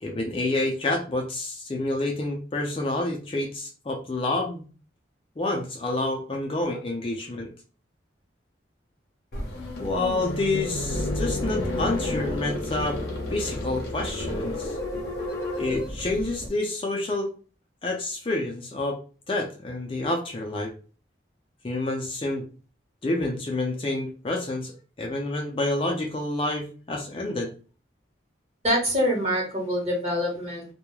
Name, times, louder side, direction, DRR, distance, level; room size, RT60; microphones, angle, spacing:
voice 1, 0.0-4.7 5.4-7.5 9.8-13.0 13.3-14.8 15.6-17.3 17.8-19.0 19.3-20.7 21.6-22.4 23.0-24.7 25.0-27.5, left 2 dB, 30° left, 1 dB, 0.4 m, -28 dB
sound 1, 9.3-16.5, left 1 dB, 55° left, 0.7 m, -31 dB
voice 2, 28.6-30.6, equal, 35° right, -2 dB, 1.0 m, -25 dB
2.3 x 2.0 x 3.0 m, 0.36 s
head